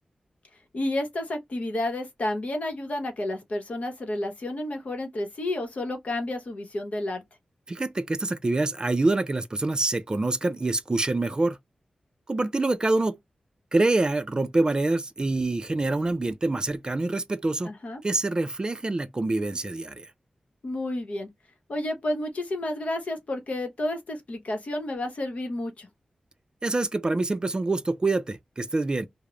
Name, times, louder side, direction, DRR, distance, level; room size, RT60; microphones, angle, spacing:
voice 1, 0.7-7.2 17.6-18.0 20.6-21.3 21.7-25.9, left 1 dB, 65° left, 0.9 m, -31 dB
voice 2, 7.7-11.6 12.3-13.1 13.7-17.7 18.0-20.1 26.6-29.1, right 2 dB, 35° right, 0.4 m, -26 dB
2.3 x 2.0 x 3.0 m
cardioid pair, 60°, 3 cm